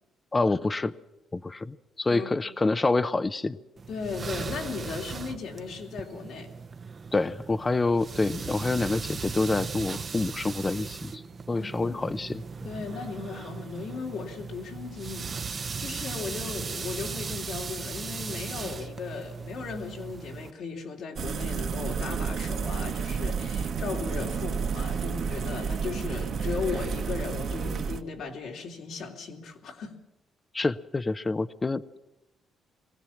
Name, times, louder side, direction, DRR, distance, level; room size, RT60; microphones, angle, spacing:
voice 1, 0.3-0.9 1.3-3.6 7.1-11.2 11.5-12.4 30.5-32.0, left 3 dB, 25° left, 15 dB, 0.6 m, -27 dB
voice 2, 2.1-2.5 3.9-6.5 11.5-12.0 12.6-30.0, left 5 dB, 75° left, 1 dB, 3.3 m, -37 dB
sound 1, 3.8-20.5, right 5 dB, 40° right, 0.8 m, -38 dB
sound 2, 21.2-28.0, right 6 dB, 65° right, 1.5 m, -31 dB
21.5 x 17.0 x 7.2 m, 0.92 s
cardioid pair, 90°, 0 cm